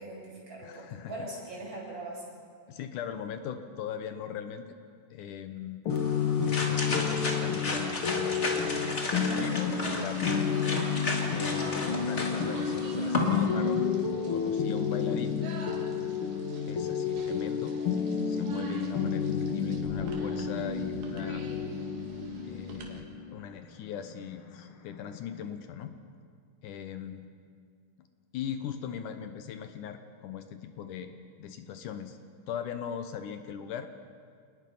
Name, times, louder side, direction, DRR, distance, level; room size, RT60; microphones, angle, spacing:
voice 1, 0.0-2.3, right 2 dB, 35° right, -3 dB, 5.9 m, -41 dB
voice 2, 0.6-1.1 2.7-4.8 5.1-5.8 6.4-9.1 9.3-10.5 11.3-13.9 14.3-15.5 16.6-17.8 18.3-21.5 22.4-26.0 26.6-27.3 28.0-28.1 28.3-31.1 31.4-32.2 32.5-33.9, left 8 dB, 75° left, 8 dB, 2.4 m, -39 dB
sound 1, 5.8-25.4, left 6 dB, 55° left, 1.6 m, -31 dB
sound 2, 5.9-13.5, left 2 dB, 25° left, 1.8 m, -34 dB
sound 3, 9.5-23.0, right 4 dB, 80° right, 3.7 m, -49 dB
28.0 x 19.5 x 5.5 m, 2.1 s
omnidirectional pair, 3.8 m